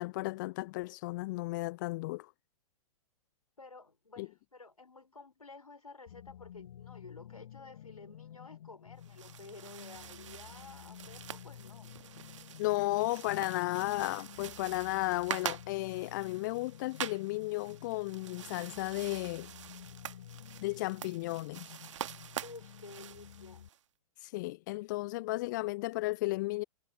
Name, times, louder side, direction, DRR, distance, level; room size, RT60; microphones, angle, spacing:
voice 1, 0.0-2.3 4.2-4.3 12.6-19.5 20.6-21.6 24.2-26.6, left 20 dB, 30° left, 0.4 m, -34 dB
voice 2, 3.6-11.9 22.4-23.7, left 3 dB, 80° left, 4.5 m, -52 dB
sound 1, 6.1-23.7, left 11 dB, 55° left, 6.6 m, -52 dB
sound 2, 9.0-23.8, right 10 dB, 55° right, 1.4 m, -45 dB
figure-of-eight pair, 110°, 18 cm